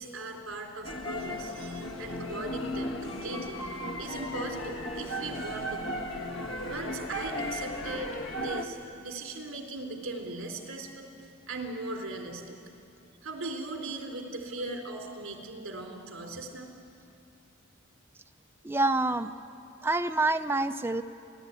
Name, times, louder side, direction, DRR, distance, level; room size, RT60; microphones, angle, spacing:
voice 1, 0.0-3.6 4.0-6.1 6.7-12.6 13.2-16.7, right 2 dB, 75° right, 1 dB, 3.6 m, -39 dB
sound 1, 0.8-8.6, left 1 dB, 70° left, 1.5 m, -36 dB
voice 2, 18.6-19.3 19.8-21.0, right 2 dB, 10° right, 7 dB, 0.6 m, -27 dB
30.0 x 12.0 x 9.7 m, 2.7 s
head